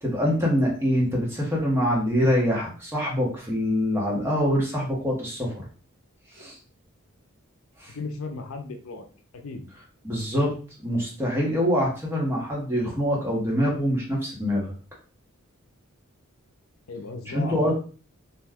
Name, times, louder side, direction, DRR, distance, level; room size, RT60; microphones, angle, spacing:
voice 1, 0.0-5.6 6.3-6.6 7.8-7.9 10.0-10.5 10.8-14.7 17.3-17.7, equal, 10° right, -3 dB, 1.0 m, -24 dB
voice 2, 7.9-9.1 9.3-9.7 16.9-17.7, left 3 dB, 70° left, 5 dB, 0.5 m, -36 dB
2.6 x 2.2 x 3.4 m, 0.38 s
head